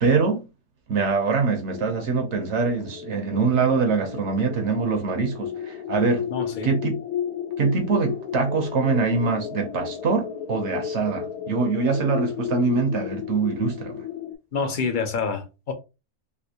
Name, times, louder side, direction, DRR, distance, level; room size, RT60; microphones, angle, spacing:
voice 1, 0.0-0.4 0.9-6.3 6.6-7.0 7.6-14.0, right 4 dB, 60° right, 0.9 m, -24 dB
sound 1, 1.7-14.4, left 9 dB, 80° left, 1.1 m, -33 dB
voice 2, 6.3-6.7 14.5-15.7, left 5 dB, 55° left, 0.5 m, -27 dB
3.3 x 2.6 x 2.7 m
omnidirectional pair, 1.6 m